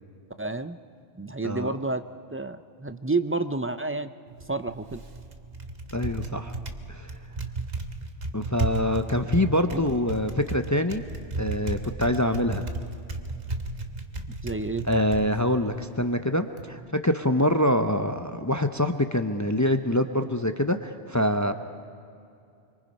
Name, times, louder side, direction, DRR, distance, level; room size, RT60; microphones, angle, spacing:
voice 1, 0.4-0.8 1.2-2.0 2.3-4.1 4.5-5.1 9.7-9.8 14.3-14.9, right 3 dB, 20° right, 10 dB, 0.3 m, -30 dB
voice 2, 1.4-1.7 5.9-6.5 6.9-7.1 8.3-11.0 11.4-12.7 14.9-21.5, left 1 dB, 20° left, 7 dB, 0.7 m, -25 dB
Typing, 4.3-16.7, right 3 dB, 45° right, 1.2 m, -35 dB
26.5 x 24.0 x 5.4 m, 2.5 s
omnidirectional pair, 1.1 m